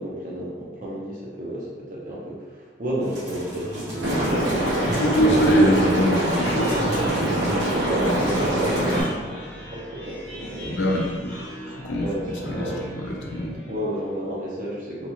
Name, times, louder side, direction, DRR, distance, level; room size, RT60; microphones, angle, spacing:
voice 1, 0.0-5.3 7.4-10.9 12.0-13.2 13.7-15.1, right 1 dB, 45° right, -5 dB, 0.7 m, -32 dB
sound 1, 3.0-9.1, right 1 dB, 20° right, 1.0 m, -37 dB
sound 2, 3.3-14.2, equal, 5° left, 0.8 m, -38 dB
Liquid, 4.0-9.0, right 1 dB, 85° right, 1.3 m, -23 dB
voice 2, 5.0-7.2 10.6-12.1 12.4-12.6 13.0-13.6, equal, 75° left, -1 dB, 0.5 m, -23 dB
3.0 x 2.4 x 2.8 m, 1.5 s
head